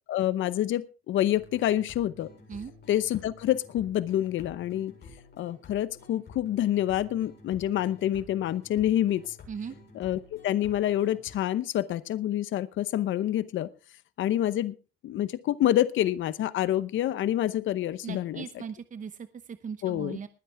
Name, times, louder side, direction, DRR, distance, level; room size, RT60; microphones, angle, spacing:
voice 1, 0.1-2.3 2.9-4.9 5.4-9.4 9.9-13.7 14.2-14.7 15.0-18.4 19.8-20.2, left 12 dB, 75° left, 15 dB, 0.8 m, -27 dB
sound 1, 1.3-11.3, left 3 dB, 60° left, 7.6 m, -51 dB
voice 2, 18.0-20.3, right 6 dB, 40° right, 12 dB, 0.9 m, -39 dB
20.5 x 10.0 x 3.4 m, 0.33 s
cardioid pair, 90°, 20 cm